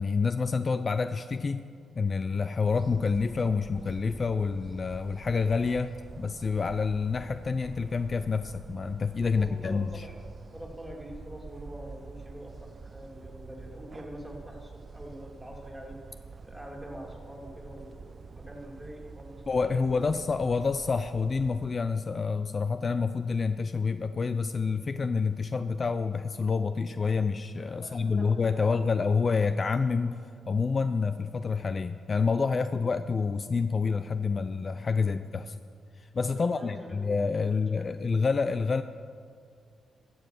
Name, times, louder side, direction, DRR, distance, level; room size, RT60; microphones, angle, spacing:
voice 1, 0.0-1.6 1.9-10.1 19.5-30.2 30.5-35.6 36.0-38.8, left 4 dB, 45° left, 11 dB, 0.4 m, -28 dB
sound 1, 2.6-21.8, right 4 dB, 45° right, 0.3 m, -47 dB
voice 2, 9.4-10.1 10.5-16.0 16.4-19.4 19.7-20.1 27.8-28.7 35.0-35.2 36.3-37.9, equal, 5° right, -1 dB, 2.7 m, -45 dB
13.0 x 7.0 x 6.3 m, 2.2 s
cardioid pair, 65°, 0 cm